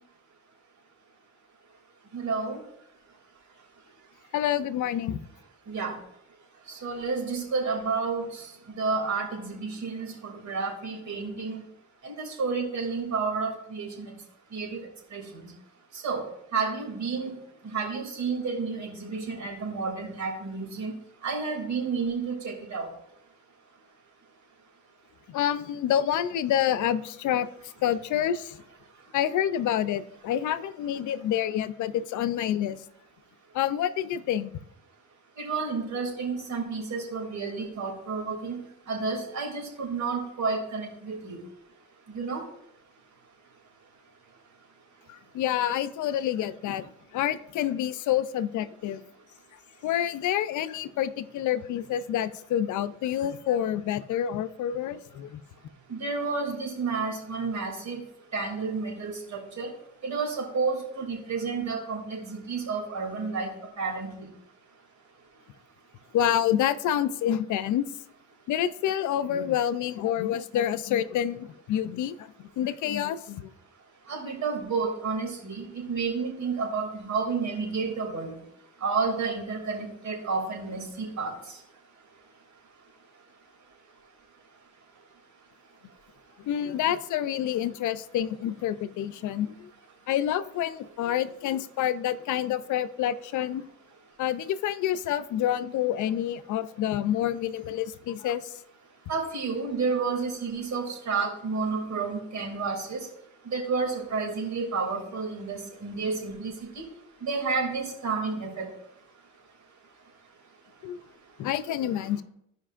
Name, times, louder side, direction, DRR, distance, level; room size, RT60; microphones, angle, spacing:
voice 1, 2.1-2.6 5.7-5.9 6.7-11.6 12.0-14.1 14.5-14.7 15.1-15.5 16.0-16.2 16.5-17.3 17.7-20.9 21.2-22.9 35.4-38.6 38.9-41.4 42.1-42.4 55.9-58.0 58.3-59.7 60.0-63.5 63.8-64.3 74.1-78.3 78.8-81.3 99.1-103.1 103.5-106.5 107.2-108.6, right 4 dB, 65° right, 0 dB, 2.8 m, -30 dB
voice 2, 4.3-5.2 25.3-27.5 27.8-28.6 29.1-32.8 33.5-34.5 45.1-49.0 49.8-55.4 66.1-67.9 68.5-73.5 86.4-89.7 90.1-93.7 94.2-98.5 110.8-111.0 111.4-112.2, left 10 dB, 75° left, 14 dB, 0.6 m, -28 dB
15.0 x 5.2 x 2.5 m, 0.76 s
cardioid pair, 90°, 30 cm